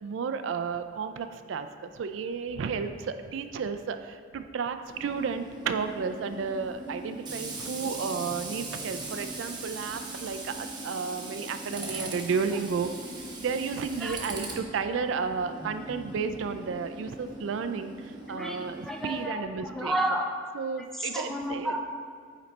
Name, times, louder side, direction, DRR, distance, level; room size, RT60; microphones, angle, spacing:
voice 1, 0.0-12.9 13.4-20.0 20.5-21.7, right 5 dB, 75° right, 9 dB, 0.4 m, -32 dB
Tools, 4.9-19.2, right 2 dB, 25° right, 0.9 m, -40 dB
voice 2, 18.8-19.4 19.7-20.3 21.1-21.8, right 1 dB, ahead, 1 dB, 0.5 m, -30 dB
8.9 x 4.1 x 3.2 m, 2.1 s
head